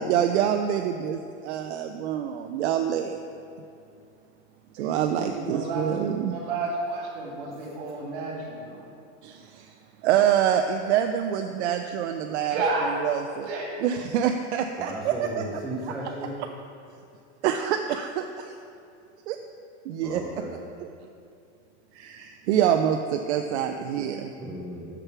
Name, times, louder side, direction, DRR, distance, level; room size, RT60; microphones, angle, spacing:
voice 1, 0.0-3.2 4.8-6.3 9.2-9.7 10.0-12.6 13.0-13.5 13.8-15.4 17.4-18.5 19.3-19.4 19.9-20.4 21.9-24.3, right 9 dB, 65° right, 5 dB, 0.5 m, -26 dB
voice 2, 4.8-5.9 6.3-8.9 12.5-12.9 13.5-13.7, right 3 dB, 50° right, -1 dB, 2.0 m, -31 dB
voice 3, 14.8-16.3 20.0-20.5 24.4-24.9, right 1 dB, ahead, -8 dB, 0.4 m, -35 dB
6.6 x 6.0 x 5.8 m, 2.5 s
supercardioid pair, 170°, 36 cm